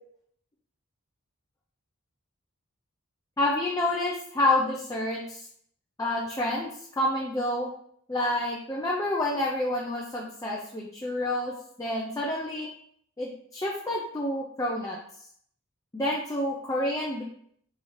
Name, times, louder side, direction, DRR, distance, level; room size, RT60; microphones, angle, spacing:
voice 1, 3.4-5.5 6.0-7.7 8.1-11.5 11.8-12.7 13.2-15.0 15.9-17.2, left 1 dB, 15° left, -3 dB, 0.4 m, -28 dB
4.9 x 2.8 x 3.1 m, 0.64 s
head